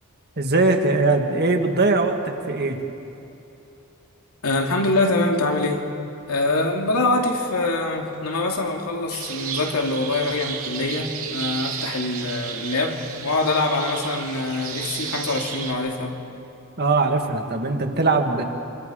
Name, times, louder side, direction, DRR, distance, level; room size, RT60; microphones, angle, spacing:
voice 1, 0.4-2.8 16.8-18.4, right 3 dB, 45° right, 4 dB, 1.8 m, -21 dB
voice 2, 4.4-5.9 6.3-16.2, left 2 dB, 90° left, 1 dB, 2.7 m, -24 dB
sound 1, 9.1-15.7, right 7 dB, 70° right, 2.6 m, -33 dB
27.0 x 26.0 x 5.1 m, 2.8 s
head